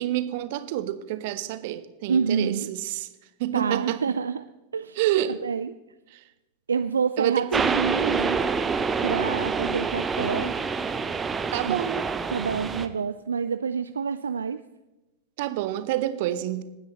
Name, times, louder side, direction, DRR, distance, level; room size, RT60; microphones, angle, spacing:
voice 1, 0.0-3.1 3.4-4.0 5.0-5.4 6.1-6.2 7.2-7.8 11.5-12.1 15.4-16.6, right 13 dB, 50° right, 11 dB, 1.0 m, -28 dB
voice 2, 2.1-2.7 3.5-4.4 4.7-5.0 5.2-5.7 6.7-8.4 9.0-10.5 11.7-11.8 12.3-14.6, right 6 dB, 70° right, 10 dB, 0.4 m, -27 dB
sound 1, 7.5-12.9, right 5 dB, 15° right, 0.9 m, -27 dB
27.5 x 9.5 x 3.1 m, 1.0 s
figure-of-eight pair, 90°, 0 cm